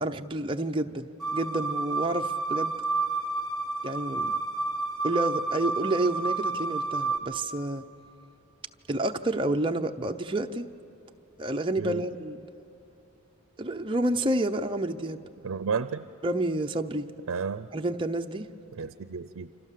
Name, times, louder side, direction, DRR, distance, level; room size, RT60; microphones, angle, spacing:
voice 1, 0.0-2.7 3.8-4.3 5.0-7.8 8.9-10.7 11.4-12.5 13.6-15.2 16.2-17.1 17.7-18.5, right 1 dB, 25° right, 4 dB, 0.7 m, -29 dB
sound 1, 1.2-7.2, right 3 dB, ahead, 2.6 m, -30 dB
voice 2, 15.4-16.1 17.3-17.7 18.7-19.5, right 6 dB, 80° right, 13 dB, 0.5 m, -32 dB
28.5 x 26.0 x 7.5 m, 2.9 s
head